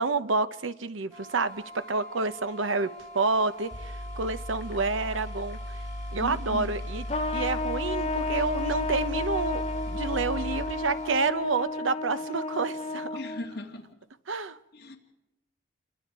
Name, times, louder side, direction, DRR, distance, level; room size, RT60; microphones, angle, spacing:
voice 1, 0.0-5.6 6.1-7.0 7.3-13.2 14.3-14.6, right 4 dB, 90° right, 12 dB, 0.9 m, -29 dB
sound 1, 1.1-11.2, equal, 20° right, 4.2 m, -45 dB
sound 2, 3.4-3.5 3.7-11.5, equal, 80° left, 2.3 m, -37 dB
voice 2, 6.2-6.8 13.1-13.8 14.7-15.0, left 1 dB, 50° left, -1 dB, 2.8 m, -37 dB
Trumpet, 7.1-13.6, left 3 dB, 30° left, 0.9 m, -32 dB
28.5 x 23.5 x 4.8 m, 0.97 s
head